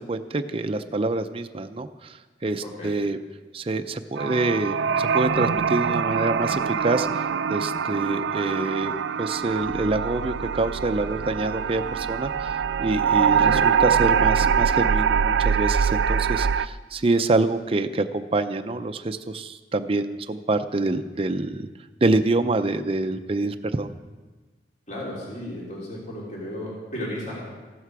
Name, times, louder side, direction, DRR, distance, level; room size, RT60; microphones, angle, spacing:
voice 1, 0.0-2.2 2.4-3.2 3.5-7.2 7.5-8.9 9.2-21.7 22.0-23.9, right 2 dB, 35° right, 8 dB, 0.6 m, -26 dB
voice 2, 2.6-3.0 13.4-13.7 24.9-27.4, left 1 dB, 45° left, -5 dB, 3.4 m, -34 dB
sound 1, 4.2-16.7, right 6 dB, 80° right, 0.4 m, -23 dB
15.0 x 12.5 x 4.8 m, 1.3 s
head